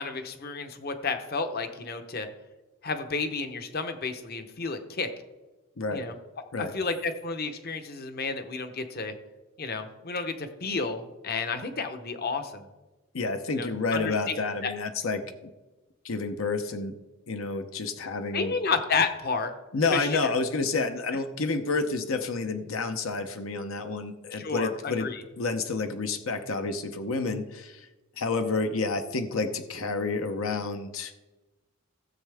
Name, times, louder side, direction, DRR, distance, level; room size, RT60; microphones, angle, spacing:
voice 1, 0.0-2.3 2.8-5.1 5.9-6.1 6.6-9.1 9.6-12.7 13.5-14.7 18.3-19.5 19.9-20.3 24.3-25.2, left 4 dB, 50° left, 8 dB, 0.9 m, -31 dB
voice 2, 13.1-15.2 16.0-16.9 17.3-18.5 19.7-25.1 25.4-27.9 28.2-31.1, left 3 dB, 75° left, 7 dB, 0.8 m, -29 dB
16.5 x 7.5 x 3.5 m, 1.1 s
head